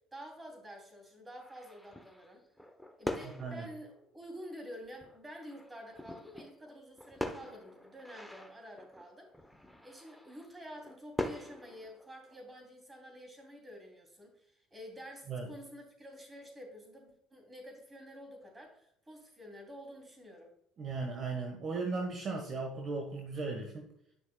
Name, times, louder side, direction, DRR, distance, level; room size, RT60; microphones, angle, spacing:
voice 1, 0.1-2.4 3.0-9.3 9.8-20.5, equal, 20° right, 2 dB, 3.0 m, -49 dB
sound 1, 1.4-3.8 4.4-4.5 4.8-12.7, left 1 dB, ahead, 0.9 m, -43 dB
voice 2, 3.2-3.6 15.3-15.4 20.8-23.8, right 3 dB, 45° right, 2 dB, 1.3 m, -37 dB
10.5 x 6.0 x 2.3 m, 0.73 s
supercardioid pair, 85°, 0 cm